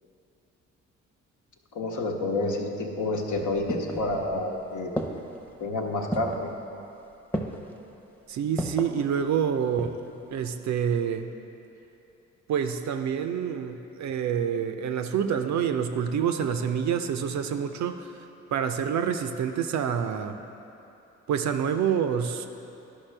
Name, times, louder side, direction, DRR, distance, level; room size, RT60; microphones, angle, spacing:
voice 1, 1.7-5.0 5.6-6.5, left 2 dB, 55° left, 1 dB, 1.0 m, -29 dB
sound 1, 3.1-4.5 5.0-5.5 6.1-6.5 7.3-7.8 8.6-9.0 9.5-10.1 10.4-10.5, equal, 5° left, 0.9 m, -33 dB
voice 2, 8.3-10.0 10.3-11.3 12.5-20.4 21.3-22.5, right 7 dB, 55° right, 8 dB, 0.6 m, -27 dB
12.0 x 5.5 x 3.3 m, 2.9 s
hypercardioid pair, 45°, 35 cm